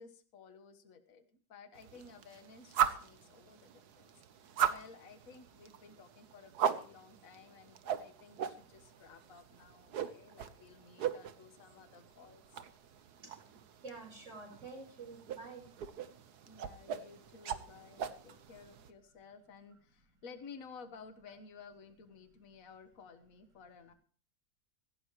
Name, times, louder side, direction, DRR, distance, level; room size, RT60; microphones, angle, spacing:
voice 1, 0.0-4.1 4.7-12.6 16.4-23.9, left 5 dB, 60° left, 9 dB, 1.7 m, -55 dB
sound 1, 1.8-18.9, right 9 dB, 85° right, 1.6 m, -40 dB
voice 2, 13.8-15.7, right 4 dB, 50° right, 3 dB, 4.9 m, -48 dB
16.5 x 16.5 x 3.1 m, 0.42 s
omnidirectional pair, 1.6 m